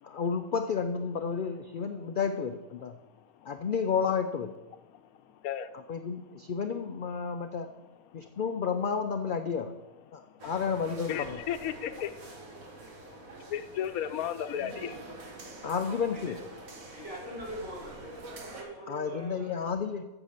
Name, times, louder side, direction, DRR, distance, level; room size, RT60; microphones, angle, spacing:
voice 1, 0.0-2.9 3.5-4.5 5.9-7.7 8.1-9.7 10.1-11.4 15.6-16.4 18.9-20.0, left 6 dB, 65° left, 7 dB, 0.5 m, -31 dB
sound 1, 10.4-18.6, right 2 dB, 70° right, 1.8 m, -46 dB
voice 2, 11.1-12.1 13.5-15.0, left 10 dB, 85° left, 11 dB, 1.1 m, -33 dB
voice 3, 16.1-16.4 16.7-18.1 18.4-19.6, equal, 55° right, -5 dB, 3.6 m, -43 dB
8.2 x 7.0 x 6.7 m, 1.1 s
omnidirectional pair, 1.5 m